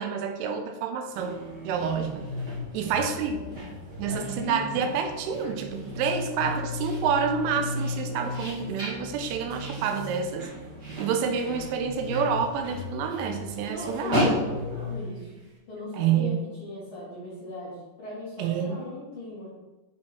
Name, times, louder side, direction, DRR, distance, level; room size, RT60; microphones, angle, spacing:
voice 1, 0.0-1.4 1.6-2.3 2.7-3.4 4.0-10.5 11.0-14.2 15.9-16.3 18.4-18.8, right 7 dB, 85° right, 6 dB, 3.1 m, -28 dB
sound 1, 1.0-15.5, equal, 40° right, 1.5 m, -36 dB
sound 2, 1.1-14.9, left 2 dB, 65° right, 2.3 m, -37 dB
voice 2, 2.7-3.7 4.1-4.6 13.7-15.4 15.7-16.3 16.6-19.5, left 2 dB, 45° left, -8 dB, 2.3 m, -38 dB
7.3 x 4.3 x 4.5 m, 1.2 s
omnidirectional pair, 5.5 m